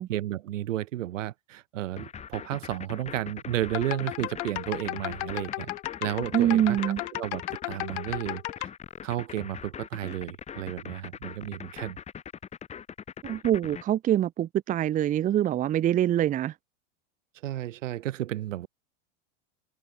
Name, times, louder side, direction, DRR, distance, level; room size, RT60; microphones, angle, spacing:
voice 1, 0.0-5.7 6.0-6.8 7.1-8.7 9.0-12.0 17.4-18.7, right 13 dB, 85° right, 6.2 m, -32 dB
sound 1, 2.0-13.8, left 8 dB, 20° left, 2.0 m, -41 dB
sound 2, 3.7-8.7, left 19 dB, 65° left, 1.5 m, -34 dB
voice 2, 6.3-7.0 13.2-16.5, right 11 dB, 20° right, 0.9 m, -24 dB
supercardioid pair, 150°, 37 cm